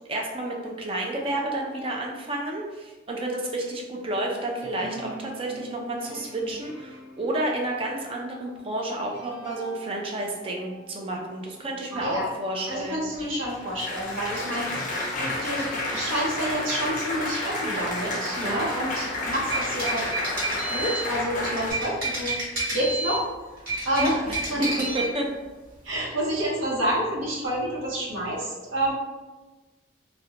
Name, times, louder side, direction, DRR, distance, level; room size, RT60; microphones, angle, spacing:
voice 1, 0.1-13.4 24.0-24.1 24.6-24.7 24.9-25.3, right 1 dB, 30° right, 0 dB, 0.3 m, -30 dB
sound 1, 4.1-12.1, right 2 dB, 5° right, 0.7 m, -44 dB
voice 2, 11.9-12.3 12.7-14.7 15.2-20.1 20.7-22.4 22.7-23.3 23.8-24.6 25.8-28.9, right 1 dB, 75° right, -4 dB, 0.8 m, -28 dB
Applause, 13.3-21.7, left 2 dB, 40° left, 0.5 m, -30 dB
sound 2, 19.2-21.1 21.6-23.2 23.6-25.1, right 2 dB, 45° right, 1.2 m, -29 dB
2.4 x 2.1 x 2.8 m, 1.2 s
head